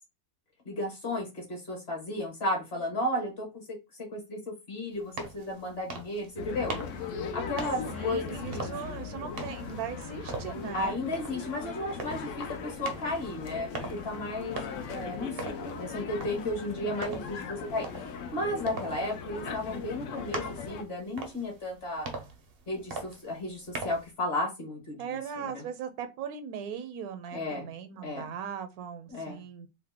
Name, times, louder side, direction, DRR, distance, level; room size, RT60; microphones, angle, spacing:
voice 1, 0.6-6.8 7.3-8.7 10.7-14.6 14.9-22.1 22.7-25.7 27.3-27.7 28.0-28.3 29.1-29.4, left 1 dB, 45° left, 1.3 m, -34 dB
sound 1, 4.9-24.1, right 3 dB, 60° right, 0.6 m, -43 dB
sound 2, 6.4-20.8, left 6 dB, 65° left, 0.8 m, -39 dB
voice 2, 7.9-11.0 15.4-15.9 25.0-29.7, right 7 dB, 80° right, 1.0 m, -39 dB
2.9 x 2.1 x 3.4 m
omnidirectional pair, 1.6 m